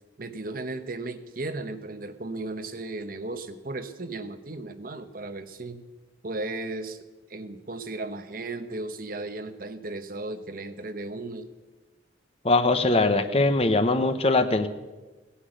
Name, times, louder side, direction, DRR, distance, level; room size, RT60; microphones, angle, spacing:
voice 1, 0.2-5.8 6.2-11.5, right 2 dB, 50° right, 10 dB, 0.9 m, -35 dB
voice 2, 12.4-14.7, left 2 dB, 30° left, 9 dB, 0.9 m, -21 dB
17.0 x 10.0 x 7.9 m, 1.2 s
head